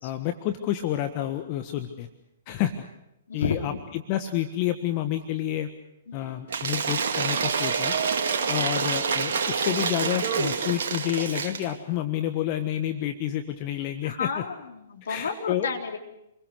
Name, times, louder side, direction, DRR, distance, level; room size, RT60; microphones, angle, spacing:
voice 1, 0.0-2.1 2.5-2.7 3.3-3.7 4.1-5.7 6.1-7.9 8.5-14.4 15.1-15.7, left 12 dB, 35° left, 7 dB, 1.5 m, -29 dB
voice 2, 3.3-3.7 6.1-6.4 8.3-8.6 14.0-16.0, left 5 dB, 65° left, 2 dB, 3.8 m, -32 dB
Cheering / Applause / Crowd, 6.5-11.7, right 5 dB, 55° right, 2.2 m, -27 dB
27.5 x 22.0 x 6.5 m, 0.85 s
figure-of-eight pair, 115°, 0 cm